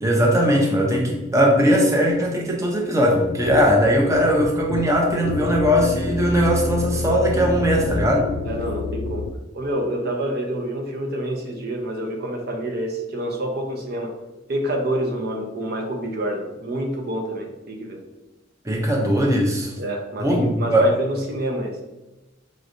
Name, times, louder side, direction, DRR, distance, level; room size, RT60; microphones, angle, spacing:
voice 1, 0.0-8.3 18.6-19.7 20.2-20.9, equal, 15° right, -1 dB, 0.7 m, -19 dB
sound 1, 3.4-9.4, left 2 dB, 50° left, 0.4 m, -27 dB
voice 2, 8.4-9.3 9.5-14.1 14.5-18.0 19.8-21.8, right 1 dB, 55° right, 2 dB, 0.7 m, -27 dB
5.1 x 3.1 x 2.6 m, 1.1 s
head